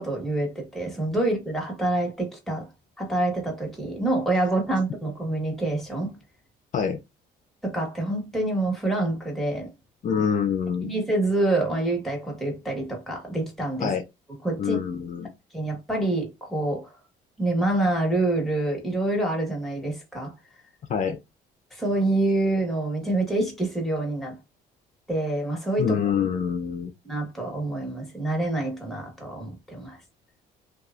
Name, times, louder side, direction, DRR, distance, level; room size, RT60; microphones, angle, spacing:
voice 1, 0.0-2.7 3.0-6.2 7.6-9.7 10.8-13.9 14.4-14.8 15.5-16.9 17.4-20.3 21.7-24.4 25.1-26.0 27.0-30.0, right 2 dB, ahead, 1.3 m, -26 dB
voice 2, 10.0-10.9 13.8-14.0 14.6-15.3 20.9-21.2 25.8-26.9, left 7 dB, 50° left, 0.5 m, -25 dB
2.9 x 2.3 x 2.4 m
cardioid pair, 110°, 17 cm